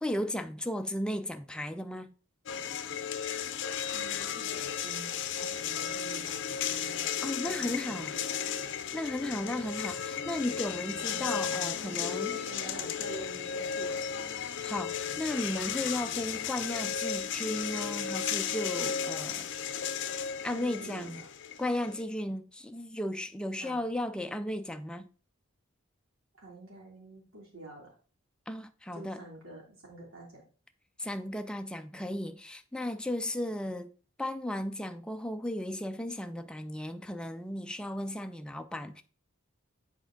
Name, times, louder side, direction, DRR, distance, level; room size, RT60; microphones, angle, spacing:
voice 1, 0.0-2.1 7.2-8.1 8.9-12.4 14.6-19.5 20.4-21.2 21.6-25.1 28.5-29.2 31.0-33.9 34.2-39.0, left 1 dB, 5° left, 0.4 m, -35 dB
sound 1, 2.5-22.0, left 8 dB, 60° left, 0.6 m, -34 dB
voice 2, 3.9-7.1 7.5-8.7 9.3-9.5 12.1-14.1 20.5-21.3 23.6-23.8 26.4-27.9 28.9-30.4, right 2 dB, 90° right, 3.0 m, -47 dB
7.4 x 4.4 x 3.8 m
head